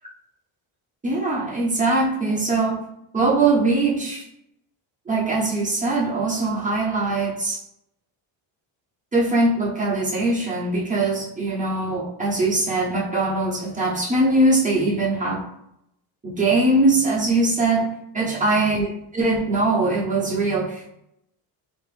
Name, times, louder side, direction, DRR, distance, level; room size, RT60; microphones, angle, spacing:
voice 1, 1.0-2.8 3.1-4.2 5.1-7.6 9.1-15.4 16.2-17.9 18.1-20.9, right 2 dB, 15° right, -5 dB, 1.2 m, -21 dB
3.0 x 2.9 x 3.4 m, 0.78 s
cardioid pair, 100°, 48 cm